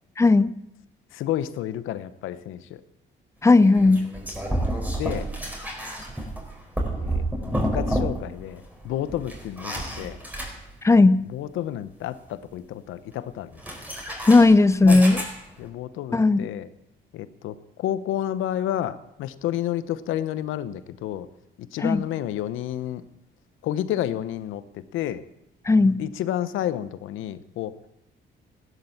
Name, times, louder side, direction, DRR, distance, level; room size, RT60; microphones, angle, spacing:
voice 1, 0.2-0.5 3.4-4.0 10.8-11.2 14.3-15.2 16.1-16.5 21.8-22.0 25.7-26.0, left 3 dB, 15° left, 16 dB, 0.6 m, -16 dB
voice 2, 1.1-2.8 3.8-4.0 4.9-5.2 7.0-10.2 11.3-13.6 14.8-15.2 15.6-16.7 17.1-21.3 21.6-23.0 23.6-25.2 26.0-27.7, left 12 dB, 90° left, 14 dB, 0.9 m, -30 dB
sound 1, 3.6-8.4 8.7-11.0 13.6-15.7, right 1 dB, 10° right, 4.4 m, -30 dB
15.5 x 11.5 x 7.2 m, 0.82 s
cardioid pair, 90°, 20 cm